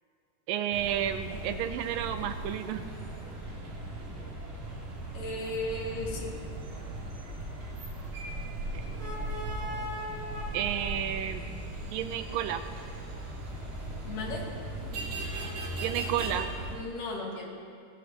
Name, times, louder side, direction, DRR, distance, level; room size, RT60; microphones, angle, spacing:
voice 1, 0.5-2.9 10.5-11.4 11.9-12.6 15.8-16.5, right 10 dB, 85° right, 9 dB, 2.4 m, -31 dB
sound 1, 0.7-16.8, right 1 dB, 70° right, 4.9 m, -38 dB
voice 2, 5.1-6.3 14.0-14.5 16.7-17.5, left 2 dB, 70° left, -4 dB, 4.5 m, -35 dB
30.0 x 16.0 x 3.1 m, 2.2 s
omnidirectional pair, 4.0 m